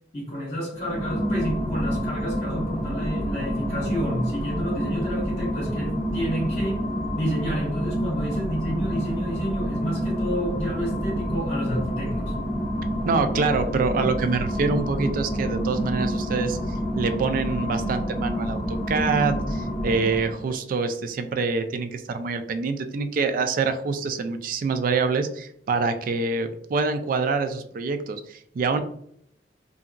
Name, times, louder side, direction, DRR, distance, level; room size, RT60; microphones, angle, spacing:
voice 1, 0.1-6.9 7.1-12.4, equal, 40° left, 1.4 m, -30 dB
sound 1, 0.7-20.5, equal, ahead, 0.9 m, -28 dB
voice 2, 13.1-16.6 17.0-28.8, right 4 dB, 50° right, 0.3 m, -26 dB
2.8 x 2.6 x 2.4 m
head